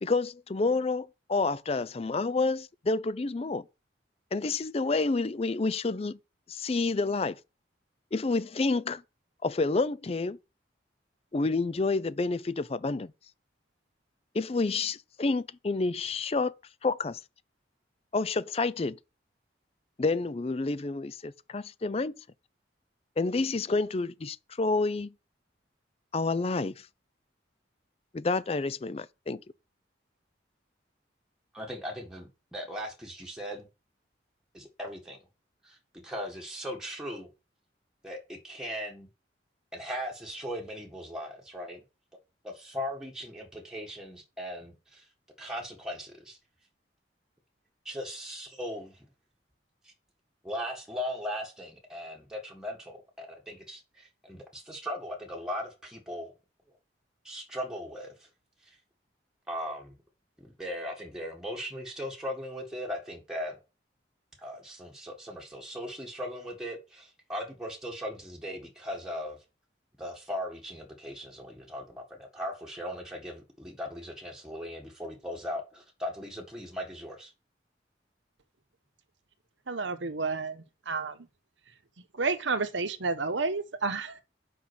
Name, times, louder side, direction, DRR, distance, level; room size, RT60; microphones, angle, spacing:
voice 1, 0.0-3.6 4.3-6.2 6.5-7.4 8.1-9.0 9.4-10.4 11.3-13.1 14.3-16.5 16.8-17.2 18.1-19.0 20.0-22.1 23.2-25.1 26.1-26.9 28.1-29.4, left 3 dB, 30° left, 0.4 m, -29 dB
voice 2, 31.5-33.7 34.5-35.2 35.6-35.8 36.0-37.3 38.0-39.1 39.7-41.8 42.4-45.1 45.4-46.4 47.9-49.1 49.8-49.9 50.4-56.3 56.7-56.8 57.2-58.3 58.6-58.8 59.5-60.0 60.4-63.6 64.4-69.4 70.0-77.3, equal, 5° right, 1.7 m, -38 dB
voice 3, 79.7-81.2 82.1-84.2, right 4 dB, 80° right, 1.0 m, -31 dB
6.1 x 5.5 x 6.2 m
head